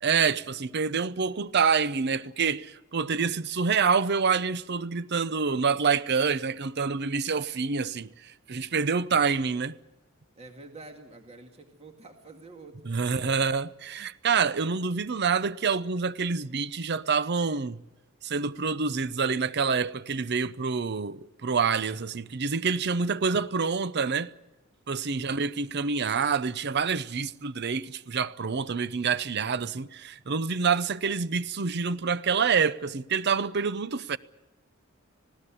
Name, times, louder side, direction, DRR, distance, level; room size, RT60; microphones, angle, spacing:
voice 1, 0.0-9.8 12.8-17.8 18.2-24.3 24.9-34.2, right 5 dB, 55° right, 0.7 m, -27 dB
voice 2, 10.4-13.5 25.1-25.5, right 2 dB, 30° right, 2.2 m, -48 dB
20.0 x 16.5 x 10.0 m
head